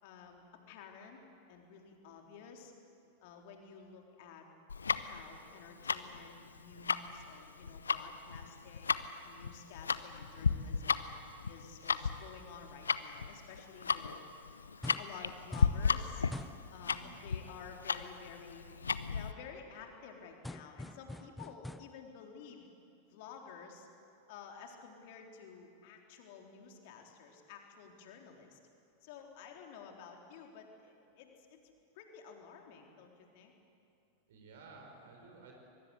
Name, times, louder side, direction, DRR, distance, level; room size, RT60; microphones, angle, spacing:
voice 1, 0.0-1.2 1.5-2.7 3.2-4.5 5.0-9.0 9.2-11.1 11.5-14.2 15.0-16.3 16.7-18.7 19.1-22.7 23.0-23.9 24.3-28.6 29.0-31.6 32.0-33.5, left 6 dB, 50° left, 2 dB, 3.7 m, -52 dB
Tick-tock, 4.7-19.3, left 5 dB, 75° left, 0.8 m, -34 dB
sound 1, 14.8-15.2 15.5-15.9 16.3-16.7 20.4-22.0, left 1 dB, 5° left, 0.6 m, -45 dB
voice 2, 16.8-17.2 21.2-21.3 34.3-35.5, right 4 dB, 60° right, 2 dB, 4.9 m, -55 dB
24.0 x 22.5 x 8.2 m, 2.6 s
figure-of-eight pair, 90°, 0 cm